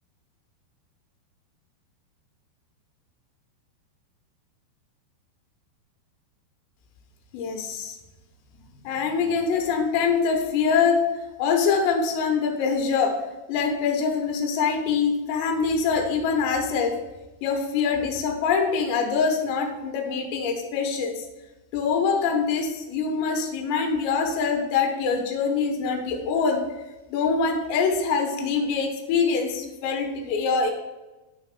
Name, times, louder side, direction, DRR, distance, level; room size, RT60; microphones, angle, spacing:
voice 1, 7.3-8.0 8.8-11.1 11.4-13.2 13.5-17.0 17.4-21.2 21.7-26.6 27.1-30.7, left 5 dB, 90° left, 3 dB, 3.1 m, -24 dB
9.5 x 4.0 x 5.1 m, 1.1 s
omnidirectional pair, 5.0 m